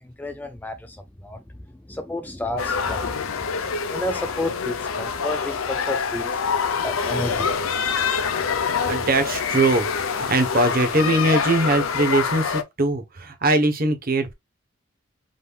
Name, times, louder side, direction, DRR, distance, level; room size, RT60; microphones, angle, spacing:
voice 1, 0.0-1.4 1.7-6.4 6.8-8.1, left 1 dB, 10° left, 0.4 m, -32 dB
sound 1, 2.6-12.6, left 6 dB, 90° left, 0.7 m, -25 dB
voice 2, 8.8-14.3, right 2 dB, 45° right, 1.0 m, -21 dB
5.2 x 3.5 x 2.4 m
head